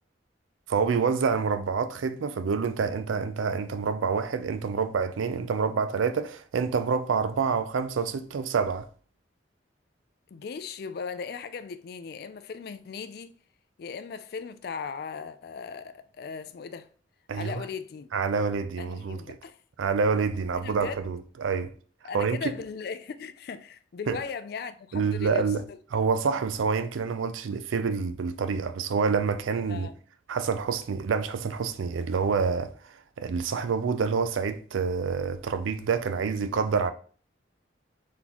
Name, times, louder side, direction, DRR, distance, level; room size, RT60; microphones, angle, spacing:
voice 1, 0.7-8.9 17.3-17.6 18.1-19.4 19.8-21.7 22.1-22.4 24.1-24.2 24.9-25.6 25.9-29.9 30.3-36.9, right 5 dB, 85° right, 0.4 m, -27 dB
voice 2, 10.3-13.3 13.8-16.9 17.3-18.1 18.8-19.6 20.6-21.1 22.0-25.8 29.7-30.0, left 5 dB, 50° left, 0.3 m, -38 dB
4.0 x 3.6 x 2.9 m
head